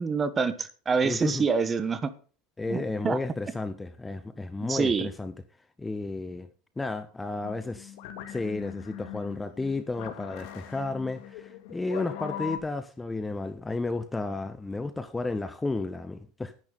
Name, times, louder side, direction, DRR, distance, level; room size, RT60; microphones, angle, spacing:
voice 1, 0.0-2.1 2.7-3.2 4.7-5.1, right 5 dB, 25° right, 1.2 m, -26 dB
voice 2, 1.0-1.5 2.6-5.3 5.8-6.5 6.8-7.9 8.3-16.5, left 3 dB, 10° left, 0.8 m, -32 dB
sound 1, 7.4-12.6, left 10 dB, 65° left, 2.3 m, -40 dB
11.0 x 10.5 x 4.0 m
supercardioid pair, 120°, 0 cm